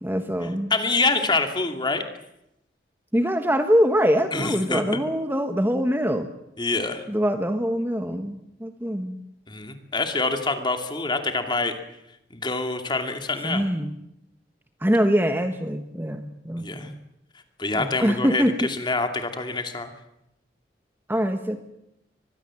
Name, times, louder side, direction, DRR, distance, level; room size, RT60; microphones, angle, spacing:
voice 1, 0.0-0.7 3.1-6.3 7.1-9.2 13.4-14.0 14.8-17.0 17.7-18.5 21.1-21.6, equal, 10° right, 7 dB, 1.2 m, -24 dB
voice 2, 0.7-2.0 4.3-4.8 6.6-7.0 9.5-11.7 12.3-13.6 16.6-16.9 17.6-19.9, left 3 dB, 25° left, 6 dB, 2.5 m, -26 dB
24.0 x 21.0 x 7.6 m, 0.83 s
head